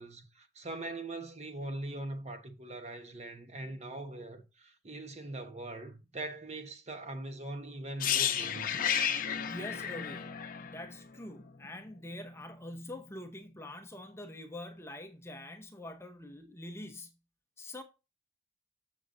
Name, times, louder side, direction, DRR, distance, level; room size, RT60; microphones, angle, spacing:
voice 1, 0.0-8.7, right 2 dB, 35° right, 1.1 m, -41 dB
sound 1, 8.0-11.9 12.1-12.3, left 8 dB, 45° left, 0.8 m, -32 dB
voice 2, 9.4-17.2 17.6-17.8, left 1 dB, 15° left, 0.7 m, -45 dB
7.0 x 6.9 x 3.7 m
head